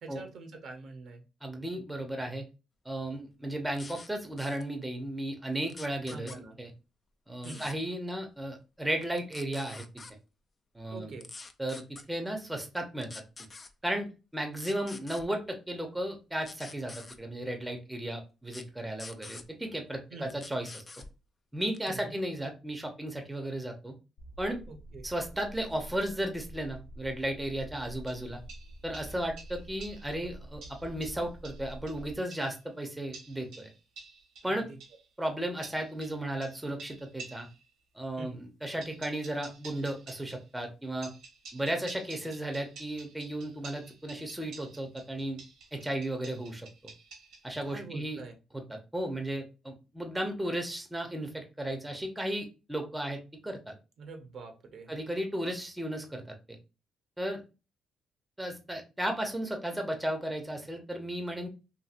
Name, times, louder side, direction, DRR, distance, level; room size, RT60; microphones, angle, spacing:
voice 1, 0.0-1.2 6.1-6.6 7.4-7.7 10.9-11.3 20.1-20.3 21.9-22.2 24.7-25.0 34.4-34.8 38.2-38.4 47.6-48.3 54.0-54.9, right 3 dB, 60° right, 5 dB, 0.6 m, -44 dB
voice 2, 1.4-2.4 2.8-6.3 6.6-6.7 7.3-9.8 10.7-11.1 11.6-13.1 13.8-20.8 21.5-23.9 24.4-24.6 25.0-28.4 28.8-33.7 34.4-34.7 35.2-37.5 37.9-41.1 41.5-45.4 45.7-46.7 47.4-48.2 48.5-53.7 54.9-56.2 57.2-57.4 58.4-61.5, right 1 dB, 5° right, 4 dB, 0.6 m, -35 dB
sound 1, 3.7-4.1 4.4-4.6 5.7-6.4 7.4-7.7 9.0-10.1 11.2-12.0 13.0-13.7 14.5-15.2 16.4-17.2 18.5-18.6 19.0-19.4 20.3-21.1 21.7-22.0, left 3 dB, 35° left, 0.3 m, -46 dB
sound 2, 24.2-32.2, right 1 dB, 75° left, 0.8 m, -47 dB
sound 3, 28.1-30.2 30.6-32.6 33.1-35.0 35.6-37.6 38.8-40.5 41.0-47.7, right 4 dB, 85° right, 1.0 m, -50 dB
2.8 x 2.6 x 2.4 m, 0.29 s
cardioid pair, 90°, 0 cm